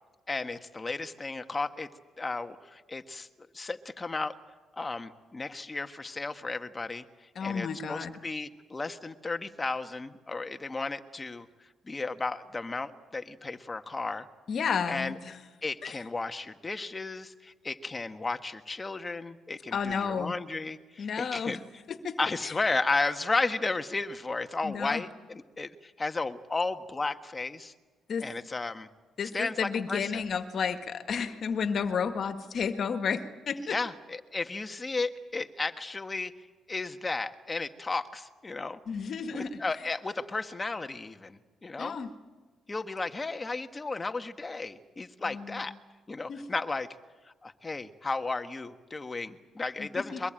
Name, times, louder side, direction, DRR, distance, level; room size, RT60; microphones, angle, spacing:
voice 1, 0.3-1.9 2.2-3.3 3.5-4.3 4.8-7.0 7.4-11.5 11.8-14.3 14.9-15.2 15.6-21.6 22.2-27.7 28.2-28.9 29.3-30.1 33.7-36.3 36.7-38.8 39.3-42.0 42.7-45.7 46.1-46.9 47.4-50.3, left 3 dB, 25° left, 7 dB, 1.5 m, -34 dB
voice 2, 7.4-8.1 14.5-15.4 15.8-16.0 19.7-20.4 21.0-21.6 21.9-22.2 22.4-22.5 24.6-25.0 28.1-28.3 29.2-33.8 38.9-39.6 41.8-42.1 45.2-45.7 46.3-46.4 49.8-50.2, left 6 dB, 55° left, 7 dB, 1.8 m, -32 dB
23.0 x 22.5 x 9.0 m, 1.3 s
cardioid pair, 90°, 0 cm